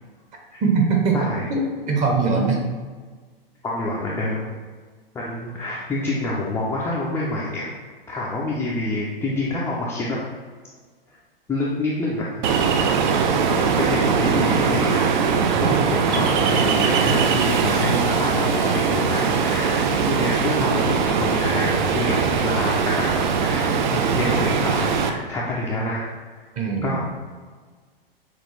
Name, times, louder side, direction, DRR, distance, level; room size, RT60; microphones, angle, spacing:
voice 1, 0.6-1.2 1.5-2.6 26.6-27.0, right 4 dB, 25° right, 1 dB, 0.8 m, -21 dB
voice 2, 1.1-1.5 3.6-4.5 5.1-7.7 8.1-10.2 11.5-12.5 13.5-15.2 15.6-26.4 26.8-27.1, left 2 dB, 10° left, -6 dB, 0.4 m, -27 dB
Ocean, 12.4-25.1, right 6 dB, 55° right, 0.5 m, -21 dB
6.0 x 2.3 x 3.2 m, 1.5 s
figure-of-eight pair, 110°, 29 cm